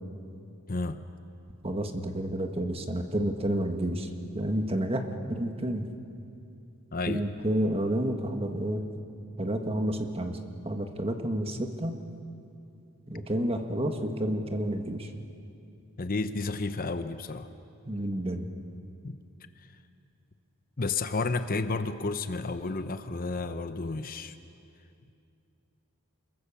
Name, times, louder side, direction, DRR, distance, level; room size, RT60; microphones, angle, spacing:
voice 1, 0.7-1.0 6.9-7.2 16.0-17.5 19.0-19.2 20.8-24.3, left 3 dB, 40° left, 10 dB, 0.8 m, -31 dB
voice 2, 1.6-4.1 4.3-5.8 7.1-8.8 9.4-10.4 10.6-11.9 13.1-15.1 17.9-18.5, right 1 dB, 25° right, 5 dB, 1.5 m, -30 dB
27.5 x 22.0 x 7.1 m, 2.5 s
head